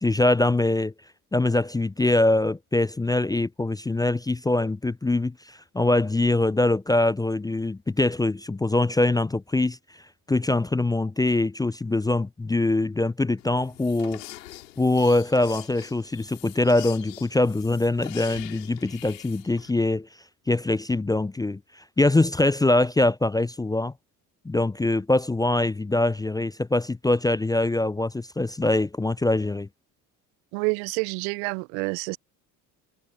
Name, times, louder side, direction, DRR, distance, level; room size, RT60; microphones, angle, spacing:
voice 1, 0.0-0.9 1.3-9.8 10.3-14.2 14.8-20.1 20.5-21.6 22.0-23.9 24.4-29.7, left 2 dB, 10° left, 0.5 m, -23 dB
sound 1, 13.4-19.7, left 16 dB, 75° left, 4.5 m, -44 dB
voice 2, 30.5-32.2, right 36 dB, 60° right, 0.7 m, -28 dB
figure-of-eight pair, 60°, 49 cm